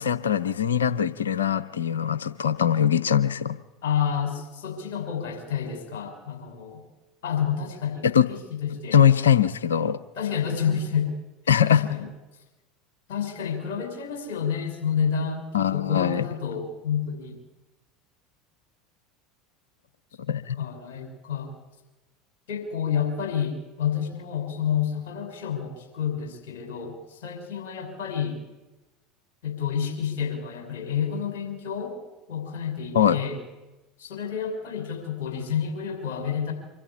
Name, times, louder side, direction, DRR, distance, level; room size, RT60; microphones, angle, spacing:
voice 1, 0.0-3.6 8.1-8.3 8.9-10.0 11.5-11.9 15.5-16.3 20.3-20.6 32.9-33.2, left 8 dB, 80° left, 15 dB, 0.8 m, -21 dB
voice 2, 3.8-6.8 7.2-9.0 10.1-11.1 11.7-12.1 13.1-17.4 20.6-21.5 22.5-28.4 29.4-32.0 32.3-33.4 34.0-36.5, left 7 dB, 65° left, 4 dB, 6.3 m, -29 dB
25.0 x 12.5 x 9.9 m, 1.1 s
figure-of-eight pair, 75°, 0 cm